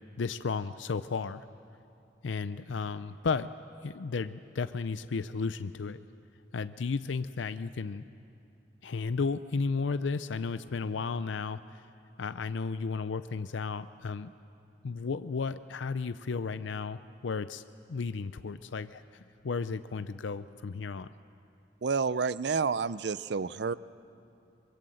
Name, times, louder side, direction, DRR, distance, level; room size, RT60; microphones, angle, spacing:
voice 1, 0.0-1.5 2.2-3.5 3.8-6.0 6.5-8.0 8.8-11.8 12.2-14.3 14.8-17.6 17.9-21.1, left 4 dB, 80° left, 12 dB, 0.5 m, -34 dB
voice 2, 21.8-23.7, right 5 dB, 60° right, 17 dB, 0.5 m, -29 dB
25.0 x 23.0 x 7.8 m, 2.6 s
head